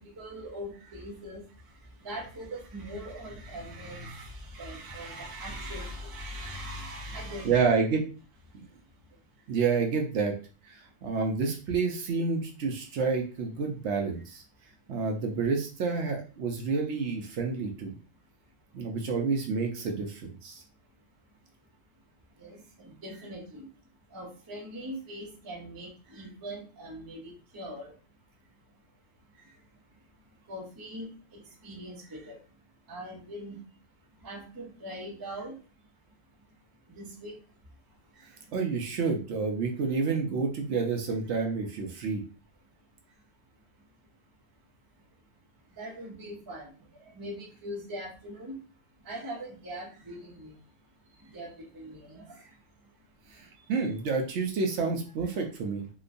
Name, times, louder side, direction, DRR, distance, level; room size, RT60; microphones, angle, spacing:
voice 1, 0.0-7.7 8.5-9.5 18.7-18.8 21.2-21.4 22.4-23.7 24.1-28.0 28.5-28.9 29.3-30.0 30.5-33.8 34.2-36.6 36.9-38.6 43.1-43.2 43.8-43.9 45.6-50.8 51.0-53.7 55.3-55.4, equal, 25° right, -2 dB, 0.5 m, -42 dB
voice 2, 7.4-8.0 9.5-10.3 10.7-14.4 14.9-17.9 18.7-20.6 38.5-42.2 53.4-55.9, right 4 dB, 70° right, 3 dB, 0.8 m, -29 dB
2.9 x 2.1 x 2.5 m, 0.36 s
omnidirectional pair, 1.3 m